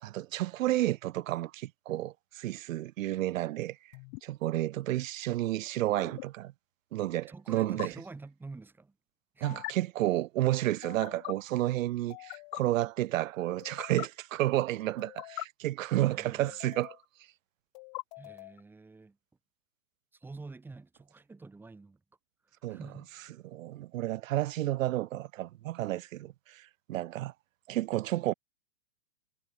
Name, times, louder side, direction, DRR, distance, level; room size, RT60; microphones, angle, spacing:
voice 1, 0.0-3.8 4.2-6.5 6.9-7.9 9.4-17.0 22.6-22.8 23.4-27.3 27.7-28.3, right 15 dB, 65° right, 0.5 m, -31 dB
sound 1, 3.9-4.2 6.0-6.2 7.6-7.9 9.4-9.7 10.8-11.3 12.1-12.6 13.6-14.1 15.0-15.4 16.5-17.0 17.7-18.6, left 40 dB or more, 25° left, 1.4 m, -42 dB
voice 2, 7.3-9.0 9.3-9.7 16.1-16.5 18.2-19.2 20.1-22.0 22.4-23.4, right 3 dB, 5° right, 2.6 m, -48 dB
hypercardioid pair, 165°, 42 cm